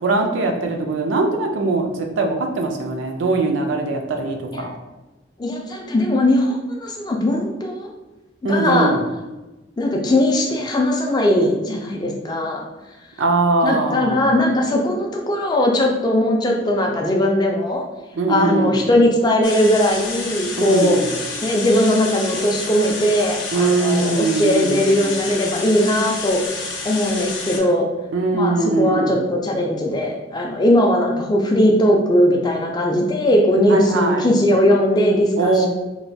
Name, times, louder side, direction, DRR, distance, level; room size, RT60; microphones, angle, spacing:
voice 1, 0.0-4.7 8.4-9.0 13.2-14.2 18.2-18.8 20.6-21.2 23.5-25.1 28.1-29.2 33.6-34.3 35.4-35.7, right 3 dB, 90° right, 3 dB, 0.4 m, -21 dB
voice 2, 5.4-7.9 8.5-8.9 9.8-12.6 13.6-17.8 18.3-21.0 21.4-26.4 26.8-27.9 28.3-35.7, left 1 dB, 20° left, 1 dB, 0.3 m, -19 dB
sound 1, 19.4-27.6, left 3 dB, 80° left, 0.6 m, -30 dB
3.1 x 2.2 x 2.6 m, 1.1 s
head